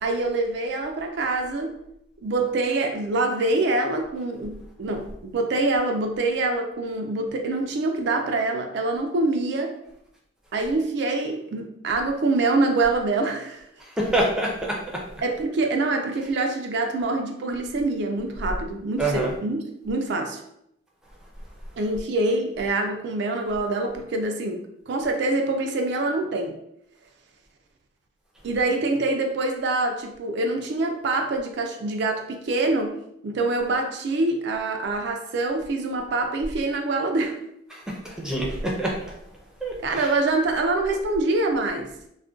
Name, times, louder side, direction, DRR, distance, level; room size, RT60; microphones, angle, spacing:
voice 1, 0.0-1.7 2.2-9.7 10.5-13.6 15.2-20.4 21.8-26.6 28.4-32.9 33.2-37.4 39.8-41.9, right 2 dB, 60° right, 4 dB, 0.4 m, -25 dB
voice 2, 14.0-14.8 19.0-19.3 37.7-38.9 39.6-40.0, right 1 dB, 5° right, -3 dB, 0.5 m, -26 dB
2.4 x 2.1 x 3.5 m, 0.77 s
head